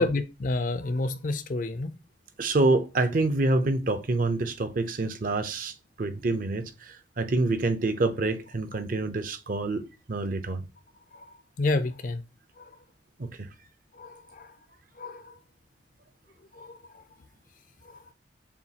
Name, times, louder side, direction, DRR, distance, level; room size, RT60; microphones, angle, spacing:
voice 1, 0.0-1.9 11.1-12.2 12.6-12.8 13.9-14.5 15.0-15.3 16.5-17.0 17.8-18.1, left 2 dB, 45° left, 0.4 m, -30 dB
voice 2, 2.4-5.7 6.0-9.8 10.1-10.6 13.2-13.5, right 2 dB, 45° right, 0.6 m, -27 dB
7.0 x 2.3 x 2.8 m
head